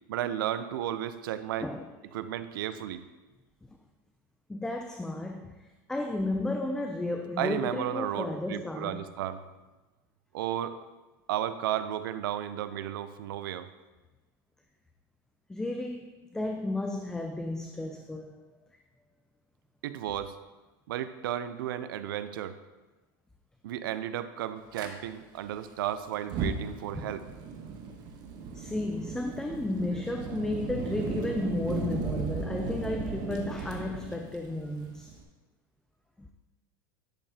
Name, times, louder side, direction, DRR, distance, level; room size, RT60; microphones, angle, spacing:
voice 1, 0.1-1.7 2.1-3.0 7.4-9.4 10.3-10.8 11.3-13.7 19.8-20.4 20.9-22.6 23.6-27.2, right 11 dB, 85° right, 0.6 m, -33 dB
voice 2, 4.5-9.0 15.5-18.4 26.9-27.1 28.5-35.1 36.2-36.3, left 2 dB, 5° left, 0.4 m, -33 dB
Fire, 24.7-24.9 26.2-35.2, right 5 dB, 40° right, 1.0 m, -36 dB
10.5 x 6.6 x 2.8 m
supercardioid pair, 145°, 11 cm